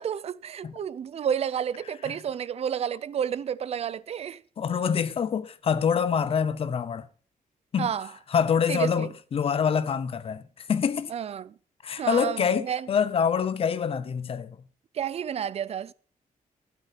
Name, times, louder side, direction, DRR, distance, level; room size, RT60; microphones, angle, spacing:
voice 1, 0.0-4.4 7.8-8.1 8.7-9.1 11.1-11.6 12.0-12.9 14.9-15.9, right 8 dB, 50° right, 0.5 m, -30 dB
voice 2, 4.6-7.1 7.7-7.9 8.3-11.1 11.8-14.6, left 7 dB, 45° left, 0.8 m, -26 dB
12.5 x 8.5 x 5.8 m
wide cardioid pair, 180°, 14 cm